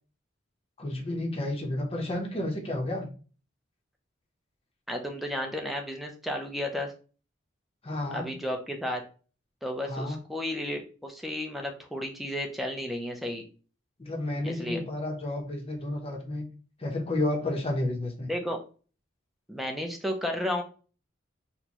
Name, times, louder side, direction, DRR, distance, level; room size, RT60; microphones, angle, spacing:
voice 1, 0.8-3.1 7.8-8.3 9.9-10.2 14.0-16.5 16.8-18.3, left 1 dB, 30° left, 1 dB, 0.7 m, -31 dB
voice 2, 4.9-6.9 8.1-9.0 9.6-13.4 14.4-14.8 18.3-18.6 19.5-20.6, left 1 dB, ahead, 2 dB, 0.5 m, -33 dB
4.3 x 2.2 x 2.9 m, 0.37 s
head